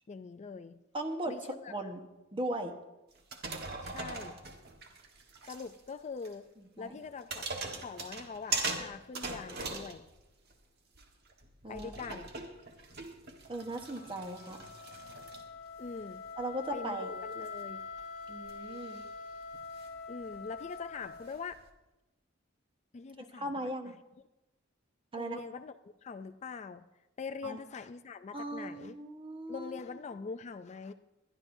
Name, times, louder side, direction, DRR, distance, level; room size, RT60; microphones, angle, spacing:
voice 1, 0.1-0.8 1.3-1.9 3.8-4.4 5.5-6.5 6.8-7.4 7.8-10.1 11.7-12.3 15.8-16.2 16.7-17.8 20.1-21.6 22.9-23.5 23.8-23.9 25.1-25.7 26.0-26.8 27.2-29.0 29.5-30.9, left 5 dB, 35° left, 10 dB, 0.4 m, -43 dB
voice 2, 0.9-1.3 1.7-2.0 2.3-2.7 6.8-7.0 11.6-11.9 13.5-14.6 16.4-17.1 18.3-19.0 23.2-23.9 25.1-25.4 27.4-27.6 28.3-29.8, right 1 dB, 25° right, 5 dB, 1.2 m, -38 dB
sound 1, 3.2-5.9 6.2-6.3 7.0-10.6 10.9-21.7, right 3 dB, 55° right, 1.4 m, -42 dB
Wind instrument woodwind instrument, 13.6-21.6, left 4 dB, 85° left, 1.1 m, -45 dB
21.5 x 12.0 x 2.7 m, 1.0 s
head